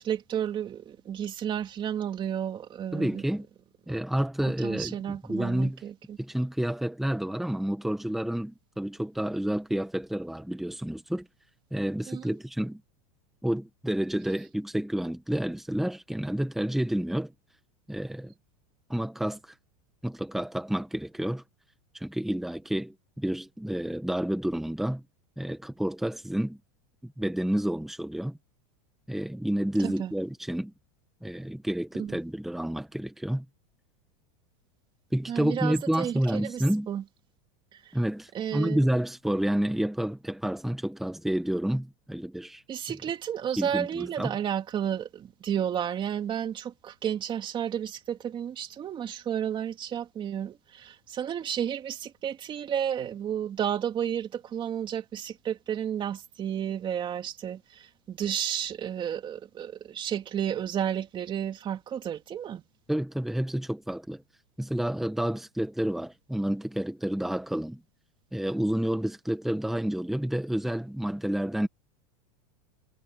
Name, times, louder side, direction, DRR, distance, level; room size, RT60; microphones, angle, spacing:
voice 1, 0.0-3.2 4.4-6.2 12.1-12.4 29.8-30.1 32.0-32.2 35.3-37.0 37.7-37.9 38.3-38.8 42.7-62.6, right 9 dB, 25° right, 2.8 m, -32 dB
voice 2, 2.9-3.5 3.9-5.8 6.2-11.3 11.7-12.8 13.4-17.3 17.9-18.3 18.9-19.5 20.0-21.4 21.9-25.0 25.4-26.6 27.0-28.4 29.1-30.7 31.2-33.4 35.1-36.9 37.9-42.6 43.6-44.3 62.9-64.2 64.6-67.8 68.3-71.7, right 1 dB, ahead, 1.5 m, -29 dB
supercardioid pair, 145°, 19 cm